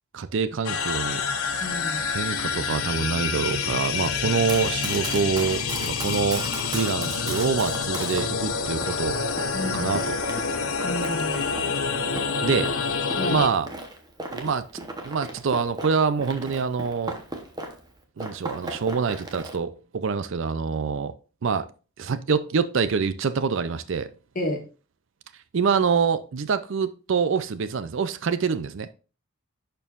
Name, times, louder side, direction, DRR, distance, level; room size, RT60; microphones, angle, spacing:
voice 1, 0.1-1.2 2.1-6.5 6.7-9.2 9.7-10.2 12.4-12.8 13.3-13.7 14.3-14.7 15.0-17.2 18.2-21.1 21.4-21.7 22.0-24.1 25.5-28.9, right 5 dB, 55° right, 0.4 m, -25 dB
sound 1, 0.6-13.5, left 5 dB, 75° left, 0.7 m, -27 dB
voice 2, 1.6-2.0 9.5-9.9 10.8-11.4 13.2-13.4 24.4-24.6, left 1 dB, 40° left, 1.8 m, -30 dB
Run, 4.3-8.3 8.8-17.9 18.2-19.6, right 2 dB, 20° right, 0.9 m, -37 dB
10.5 x 4.5 x 2.4 m
head